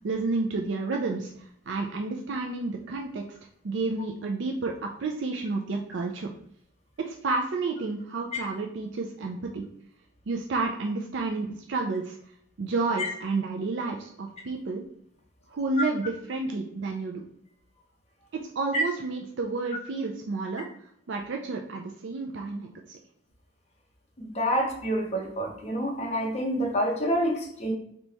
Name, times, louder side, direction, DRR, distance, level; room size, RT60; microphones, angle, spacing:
voice 1, 0.0-3.2 3.6-4.7 5.0-6.3 7.0-9.6 10.3-12.2 12.6-14.8 15.5-17.2 18.6-20.7 21.1-23.0, right 3 dB, 65° right, 1 dB, 0.4 m, -30 dB
voice 2, 24.2-27.7, equal, 35° left, 1 dB, 0.9 m, -27 dB
3.4 x 2.9 x 4.0 m, 0.69 s
head